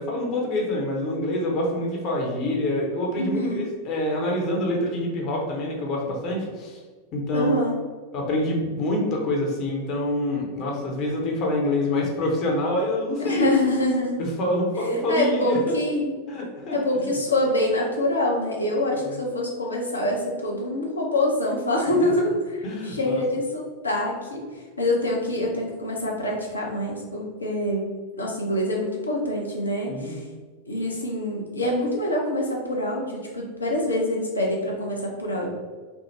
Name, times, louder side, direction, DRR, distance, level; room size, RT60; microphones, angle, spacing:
voice 1, 0.0-6.8 7.1-7.6 8.1-13.5 14.2-15.6 16.3-16.8 22.0-22.1 22.6-23.1 29.9-30.2, left 1 dB, 35° left, -1 dB, 0.7 m, -26 dB
voice 2, 3.2-3.7 7.3-7.8 13.2-14.3 14.7-16.1 16.7-24.5 24.8-27.9 28.2-30.2 30.7-35.5, left 1 dB, 80° left, -1 dB, 0.6 m, -25 dB
3.3 x 2.0 x 2.8 m, 1.5 s
figure-of-eight pair, 90°, 0 cm